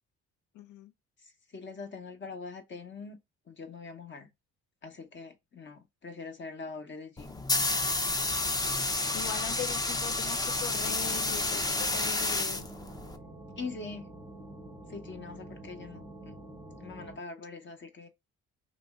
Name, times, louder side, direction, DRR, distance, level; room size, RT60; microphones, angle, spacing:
voice 1, 0.5-0.9 9.1-12.6, left 11 dB, 75° left, 0.6 m, -41 dB
voice 2, 1.2-3.2 3.5-4.3 4.8-7.4 13.6-14.1 14.9-16.4 16.8-18.1, left 4 dB, 40° left, 0.9 m, -43 dB
sound 1, 7.2-13.2, left 2 dB, 15° left, 0.4 m, -30 dB
sound 2, 10.6-17.2, right 1 dB, 10° right, 0.8 m, -47 dB
3.0 x 2.6 x 2.3 m
cardioid pair, 90°, 30 cm